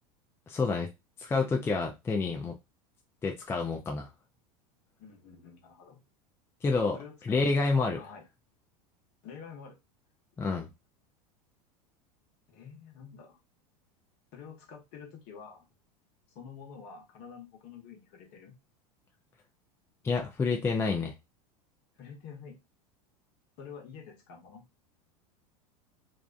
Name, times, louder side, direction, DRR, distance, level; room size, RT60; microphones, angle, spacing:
voice 1, 0.5-0.9 1.2-2.5 3.2-4.1 6.6-7.0 7.2-8.0 10.4-10.7 20.0-21.2, left 4 dB, 10° left, 0.4 m, -28 dB
voice 2, 5.0-6.0 6.9-7.4 8.0-8.2 9.2-9.8 12.5-13.4 14.3-15.7 16.3-18.5 22.0-22.6 23.6-24.6, left 6 dB, 50° left, 0.9 m, -48 dB
2.5 x 2.1 x 2.4 m
hypercardioid pair, 90°, 20 cm